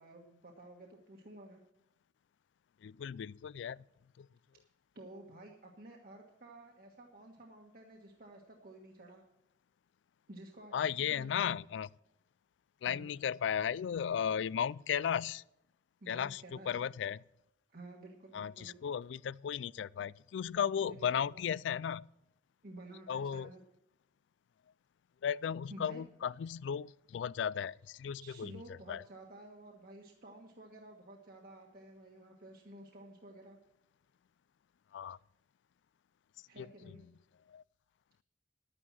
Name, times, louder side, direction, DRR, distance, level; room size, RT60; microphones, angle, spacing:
voice 1, 0.0-1.6 4.9-9.2 10.3-10.7 11.1-11.6 12.8-13.1 16.0-16.9 17.7-18.8 20.5-21.4 22.6-23.6 25.7-26.0 28.2-33.6 36.5-37.1, right 1 dB, 55° right, 1.5 m, -52 dB
voice 2, 2.8-3.8 4.2-4.3 10.7-11.9 12.8-15.4 16.1-17.2 18.3-22.1 23.1-23.5 25.2-28.6 28.9-29.0 34.9-35.2 36.6-36.7 37.5-37.6, left 8 dB, 85° left, 0.3 m, -35 dB
11.0 x 9.8 x 6.0 m
head